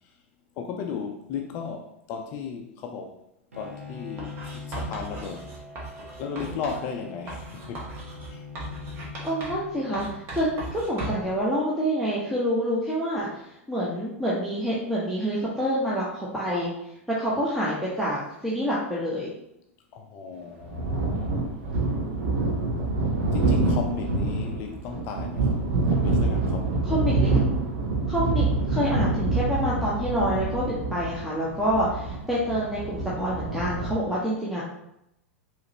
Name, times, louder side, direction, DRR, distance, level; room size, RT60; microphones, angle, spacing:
voice 1, 0.6-3.2 3.5-5.5 6.2-7.9 8.3-8.4 19.9-21.5 23.3-26.9, left 6 dB, 35° left, 0.4 m, -35 dB
Bowed string instrument, 3.5-10.2, left 4 dB, 75° right, 0.8 m, -43 dB
Writing, 4.2-6.9 7.3-9.7 9.9-11.3, right 1 dB, 30° right, 1.3 m, -37 dB
voice 2, 9.2-16.7 17.1-19.3 26.9-27.3 28.1-34.6, equal, ahead, 0.9 m, -27 dB
sound 1, 20.6-34.0, right 3 dB, 50° right, 0.9 m, -26 dB
4.9 x 3.1 x 3.0 m
figure-of-eight pair, 95°, 7 cm